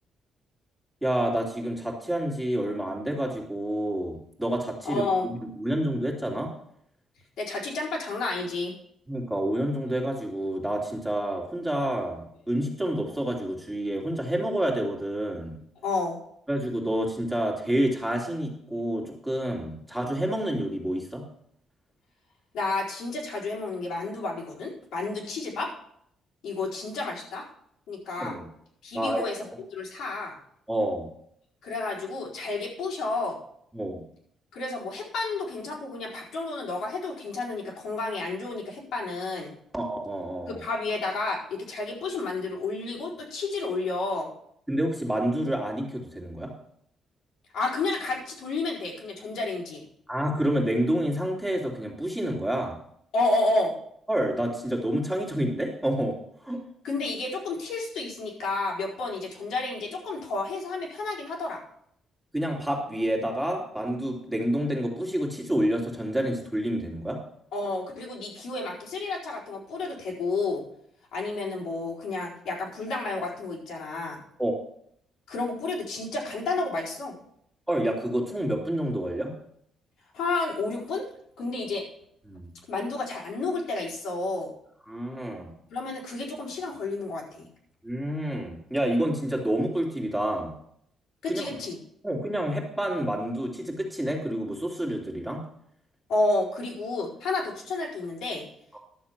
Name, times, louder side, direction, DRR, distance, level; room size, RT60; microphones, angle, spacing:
voice 1, 1.0-6.5 9.1-15.6 16.5-21.2 28.2-28.5 28.9-29.2 30.7-31.1 33.7-34.0 39.7-40.6 44.7-46.5 50.1-52.8 54.1-56.2 56.4-56.6 62.3-67.2 74.4-74.6 77.7-79.3 82.3-82.5 84.9-85.5 87.8-90.5 91.3-91.5 92.0-95.4 98.7-98.8, right 1 dB, 5° right, -2 dB, 2.7 m, -28 dB
voice 2, 4.8-5.3 7.4-8.7 15.8-16.2 22.5-25.7 26.4-27.4 27.9-28.4 28.8-29.4 29.7-30.4 31.6-33.4 34.5-39.5 40.5-44.3 47.5-49.8 53.1-53.8 56.8-61.6 67.5-70.6 71.1-74.2 75.3-77.2 80.1-81.0 81.4-81.8 82.7-84.5 85.7-87.5 91.2-91.8 96.1-98.4, left 3 dB, 80° left, -3 dB, 4.5 m, -30 dB
12.0 x 6.9 x 5.9 m, 0.69 s
cardioid pair, 125°, 0 cm